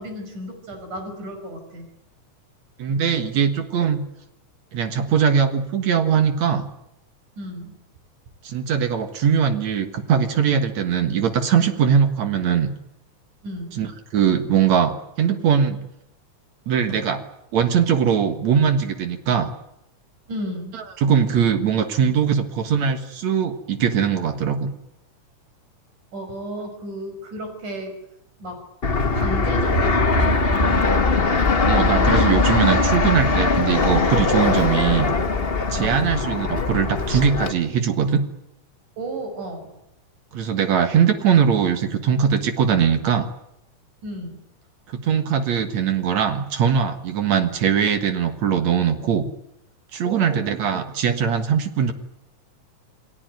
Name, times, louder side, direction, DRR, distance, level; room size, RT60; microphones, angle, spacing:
voice 1, 0.0-1.9 7.4-7.8 13.4-13.8 16.9-17.0 20.3-20.8 26.1-27.9 28.4-28.6 29.1-31.0 35.7-36.1 39.0-39.7 44.0-44.4 50.0-50.8, right 1 dB, 85° right, 5 dB, 7.4 m, -33 dB
voice 2, 2.8-4.0 4.7-6.6 8.4-12.7 13.8-15.8 16.7-17.2 17.5-19.5 21.0-24.7 30.7-30.8 31.7-35.1 35.7-38.2 40.3-43.3 45.0-49.3 49.9-51.9, right 7 dB, 65° right, 8 dB, 2.8 m, -21 dB
Fixed-wing aircraft airplane, 28.8-37.5, left 3 dB, 40° left, 0.8 m, -20 dB
28.5 x 19.0 x 9.4 m, 0.82 s
omnidirectional pair, 3.4 m